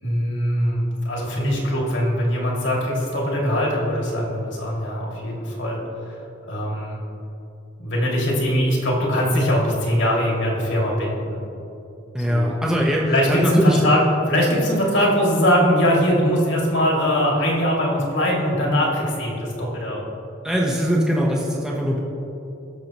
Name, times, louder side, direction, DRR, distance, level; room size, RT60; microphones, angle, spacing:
voice 1, 0.0-6.2 6.5-7.0 7.8-11.4 12.2-12.5 13.1-14.0 14.3-20.0, equal, 70° left, -3 dB, 2.5 m, -21 dB
voice 2, 12.1-13.8 20.4-22.0, equal, 5° right, -4 dB, 1.0 m, -21 dB
19.0 x 6.9 x 3.0 m, 2.9 s
head